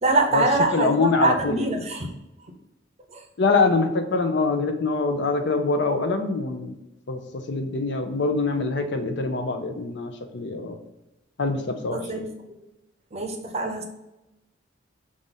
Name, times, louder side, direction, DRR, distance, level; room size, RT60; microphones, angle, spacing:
voice 1, 0.0-2.1 3.1-3.2 11.9-12.3 13.1-13.8, right 2 dB, 35° right, 4 dB, 0.7 m, -24 dB
voice 2, 0.7-1.7 3.4-6.7 7.1-7.2 7.5-10.8 11.4-12.2, left 3 dB, 65° left, 6 dB, 0.6 m, -24 dB
5.3 x 2.5 x 4.0 m, 0.97 s
head